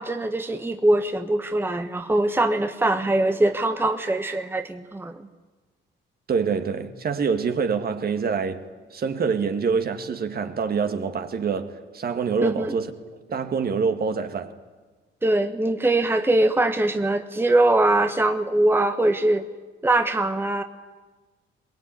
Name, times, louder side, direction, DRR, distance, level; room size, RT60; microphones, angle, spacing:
voice 1, 0.0-5.3 12.4-12.7 15.2-19.4 19.8-20.6, right 2 dB, 10° right, 1.2 m, -22 dB
voice 2, 6.3-8.6 8.9-12.9 13.3-14.5, right 5 dB, 50° right, 2.0 m, -25 dB
22.0 x 20.5 x 9.4 m
cardioid pair, 90°, 20 cm